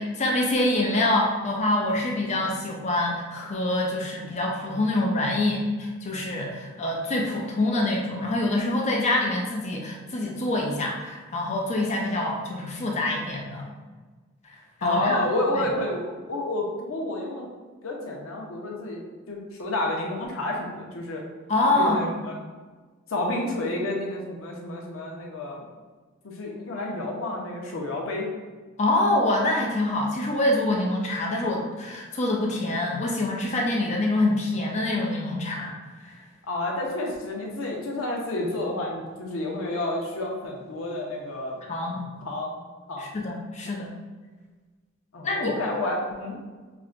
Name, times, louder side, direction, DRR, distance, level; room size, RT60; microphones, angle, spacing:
voice 1, 0.0-13.7 14.8-15.2 15.5-15.6 21.5-22.0 28.8-35.7 36.0-36.1 41.7-42.1 43.0-43.9 45.2-45.5, left 1 dB, 35° left, -1 dB, 0.5 m, -25 dB
voice 2, 14.8-17.5 17.8-21.2 21.7-22.3 23.1-25.6 26.2-28.3 36.5-41.6 42.2-42.5 42.9-43.1 45.1-46.4, left 1 dB, 90° left, -1 dB, 0.7 m, -30 dB
5.8 x 2.2 x 2.5 m, 1.4 s
head